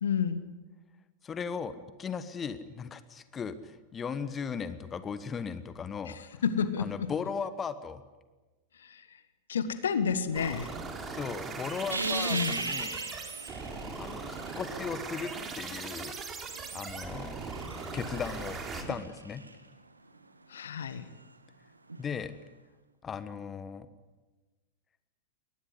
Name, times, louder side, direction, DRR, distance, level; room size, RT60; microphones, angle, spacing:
voice 1, 0.0-0.4 6.1-7.1 8.8-9.0 9.5-10.7 12.3-12.6 20.5-21.1, left 7 dB, 65° left, 13 dB, 1.5 m, -30 dB
voice 2, 1.2-6.4 6.8-8.0 11.0-13.0 14.0-16.1 16.7-17.3 17.9-19.4 22.0-22.3 23.0-23.9, left 6 dB, 20° left, 13 dB, 1.3 m, -37 dB
sound 1, 10.3-18.8, right 4 dB, 20° right, 3.5 m, -39 dB
sound 2, 11.9-15.0 16.1-19.6 21.9-22.0, right 3 dB, 80° right, 1.5 m, -38 dB
22.5 x 19.0 x 9.7 m, 1.2 s
figure-of-eight pair, 90°, 0 cm